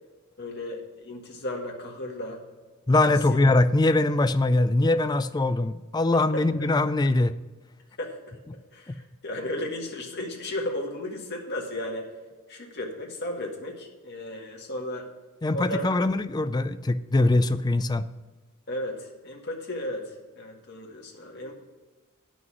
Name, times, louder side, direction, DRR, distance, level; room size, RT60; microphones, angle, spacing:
voice 1, 0.4-2.4 6.3-6.4 8.0-8.3 8.7-12.1 12.5-15.1 15.5-15.9 18.7-21.5, left 1 dB, 50° left, 0 dB, 1.8 m, -34 dB
voice 2, 2.9-7.3 8.9-9.0 15.4-18.0, left 2 dB, 20° left, 12 dB, 0.4 m, -22 dB
9.3 x 6.1 x 6.1 m, 1.3 s
head